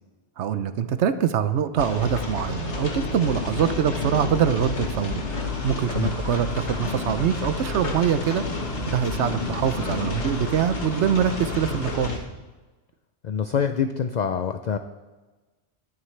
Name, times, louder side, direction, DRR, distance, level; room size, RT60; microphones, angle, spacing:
voice 1, 0.4-5.2 5.6-8.4 8.9-12.2, right 8 dB, 80° right, 12 dB, 1.0 m, -24 dB
sound 1, 1.8-12.2, left 3 dB, 85° left, 1.8 m, -30 dB
sound 2, 5.4-12.1, left 1 dB, 15° left, 0.8 m, -43 dB
voice 2, 13.2-14.8, left 7 dB, 50° left, 8 dB, 0.6 m, -25 dB
22.0 x 9.7 x 3.3 m, 1.2 s
omnidirectional pair, 1.1 m